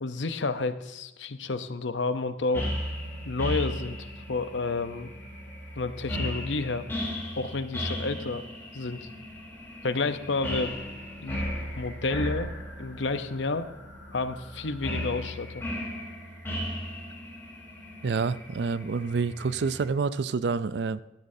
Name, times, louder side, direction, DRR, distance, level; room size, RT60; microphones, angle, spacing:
voice 1, 0.0-2.7 3.2-4.0 4.3-5.1 5.8-6.8 7.4-8.4 8.7-9.1 9.8-10.8 11.2-13.7 14.1-15.6, left 3 dB, 90° left, 11 dB, 0.8 m, -30 dB
sound 1, 2.5-19.8, equal, 15° left, 4.0 m, -36 dB
voice 2, 18.0-21.0, right 4 dB, 70° right, 16 dB, 0.4 m, -28 dB
16.5 x 12.0 x 2.7 m, 1.0 s
head